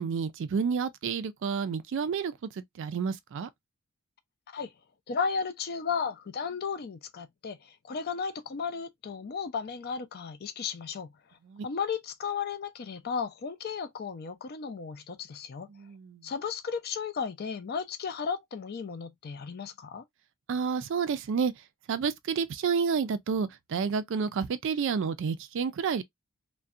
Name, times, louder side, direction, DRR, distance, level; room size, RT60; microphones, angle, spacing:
voice 1, 0.0-3.5 11.5-11.7 15.7-16.2 20.5-21.5 21.9-26.0, right 6 dB, 55° right, 0.3 m, -30 dB
voice 2, 5.1-11.1 11.6-15.7 16.2-20.0, left 6 dB, 45° left, 0.4 m, -34 dB
2.6 x 2.1 x 2.3 m
head